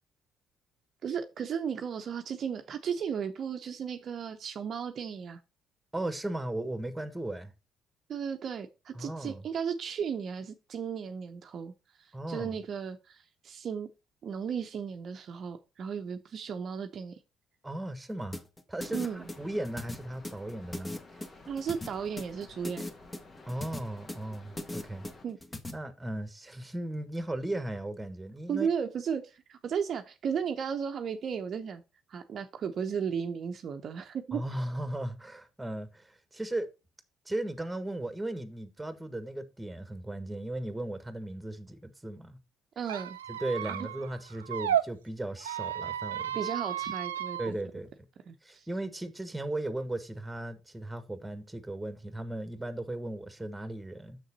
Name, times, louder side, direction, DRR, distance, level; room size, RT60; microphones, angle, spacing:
voice 1, 1.0-5.4 8.1-11.7 12.0-13.9 14.2-17.2 18.9-19.3 21.5-22.9 25.2-25.4 28.5-31.8 32.1-34.4 42.8-43.2 43.7-43.8 46.3-47.6 48.3-48.7, right 7 dB, 50° right, 0.8 m, -35 dB
voice 2, 5.9-7.5 8.9-9.4 12.1-12.6 17.6-18.4 18.7-20.9 23.4-25.1 25.7-28.7 34.3-36.7 37.2-42.4 43.3-46.4 47.4-48.1 48.4-54.2, right 1 dB, 10° right, 1.6 m, -36 dB
sound 1, 18.3-25.7, left 2 dB, 25° left, 1.7 m, -39 dB
sound 2, 18.8-25.2, left 3 dB, 40° left, 1.9 m, -53 dB
Squeak, 42.8-44.8 45.4-47.5, right 10 dB, 85° right, 0.5 m, -33 dB
6.8 x 6.5 x 4.2 m
figure-of-eight pair, 50°, 0 cm